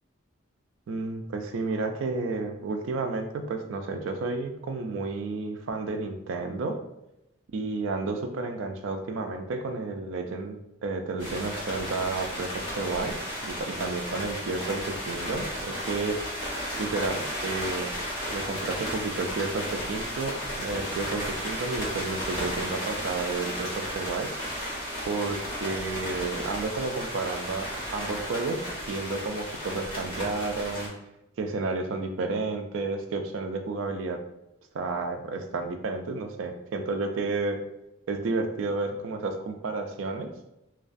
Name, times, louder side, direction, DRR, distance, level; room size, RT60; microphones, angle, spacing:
voice 1, 0.9-6.8 7.5-13.1 13.4-16.2 16.8-17.9 18.3-24.3 25.1-27.7 27.9-30.9 31.4-34.2 34.7-37.6 38.1-40.5, right 3 dB, 70° right, 5 dB, 0.3 m, -31 dB
sound 1, 11.2-30.9, equal, 25° left, 1.0 m, -34 dB
2.3 x 2.2 x 2.5 m, 0.89 s
head